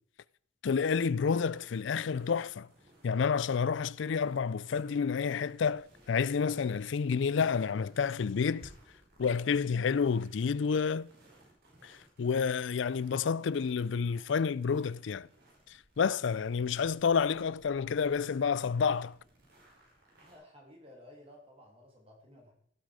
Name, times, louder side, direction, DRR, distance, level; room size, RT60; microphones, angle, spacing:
voice 1, 0.6-2.7 3.0-8.7 9.2-11.1 11.8-15.3 15.7-19.2, left 6 dB, 70° left, 0.4 m, -29 dB
sound 1, 1.2-20.4, right 1 dB, 50° right, 4.7 m, -61 dB
voice 2, 20.2-22.5, left 1 dB, 30° right, 2.9 m, -55 dB
17.5 x 7.8 x 4.9 m
head